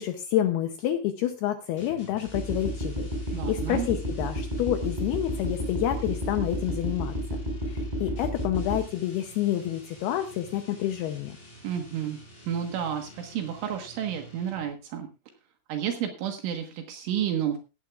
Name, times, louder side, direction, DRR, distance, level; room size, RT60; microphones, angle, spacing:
voice 1, 0.0-7.1 7.7-11.4, left 12 dB, 80° left, 7 dB, 2.3 m, -28 dB
sound 1, 1.8-14.8, equal, 10° left, 3.7 m, -49 dB
sound 2, 2.3-8.8, equal, 10° right, 4.6 m, -31 dB
voice 2, 3.3-3.9 11.6-12.2 12.5-15.1 15.7-17.6, right 9 dB, 75° right, 4 dB, 3.9 m, -31 dB
15.5 x 15.0 x 2.5 m, 0.30 s
omnidirectional pair, 5.7 m